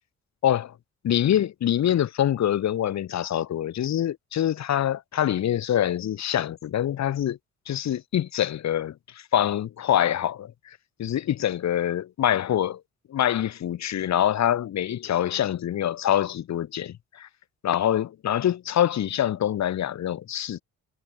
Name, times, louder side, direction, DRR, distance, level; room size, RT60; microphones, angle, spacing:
voice 1, 0.4-0.7 1.0-7.4 7.7-10.5 11.0-12.8 13.1-17.3 17.6-20.6, left 11 dB, 65° left, 2.1 m, -25 dB
cardioid pair, 90°, 30 cm